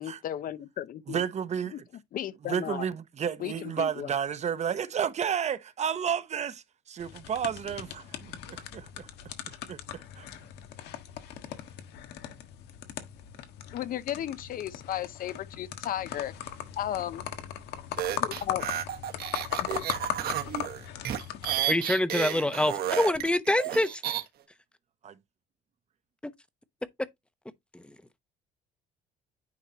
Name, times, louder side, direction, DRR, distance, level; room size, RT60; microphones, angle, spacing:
voice 1, 0.0-1.2 1.7-1.8 2.1-2.9 3.4-4.1 13.7-16.3 16.8-17.3 18.1-18.6 19.6-19.7, left 11 dB, 55° left, 0.8 m, -34 dB
voice 2, 1.1-1.8 2.4-10.3 25.0-25.1, right 8 dB, 40° right, 0.9 m, -32 dB
sound 1, 7.0-21.6, left 10 dB, 85° left, 1.4 m, -39 dB
sound 2, 18.0-24.2, right 11 dB, 65° right, 1.5 m, -32 dB
voice 3, 21.7-24.0 26.2-26.3 27.7-27.9, left 1 dB, 5° left, 0.8 m, -26 dB
9.7 x 4.5 x 2.8 m
cardioid pair, 110°, 17 cm